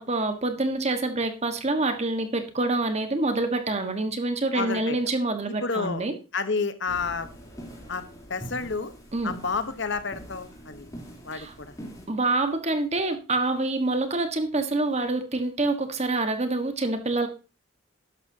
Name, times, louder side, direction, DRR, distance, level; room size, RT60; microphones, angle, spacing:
voice 1, 0.0-6.1 9.1-9.3 11.3-11.5 12.1-17.3, right 2 dB, 30° right, 7 dB, 1.5 m, -26 dB
voice 2, 4.5-5.0 5.5-6.0 6.3-7.3 7.9-8.0 8.3-8.9 9.2-10.9 11.2-11.7, left 4 dB, 55° left, 11 dB, 1.1 m, -30 dB
sound 1, 6.9-12.1, equal, 15° left, 3.3 m, -43 dB
12.0 x 11.5 x 2.8 m, 0.32 s
head